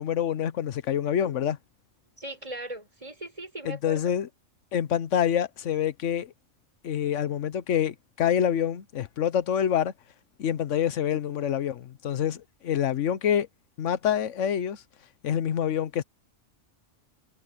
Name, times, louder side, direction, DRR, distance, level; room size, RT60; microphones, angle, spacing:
voice 1, 0.0-1.6 3.6-4.3 4.7-6.3 6.8-9.9 10.4-13.5 13.8-14.8 15.2-16.0, left 9 dB, 85° left, 1.2 m, -26 dB
voice 2, 2.2-4.2, right 1 dB, 30° right, 6.1 m, -39 dB
omnidirectional pair, 1.2 m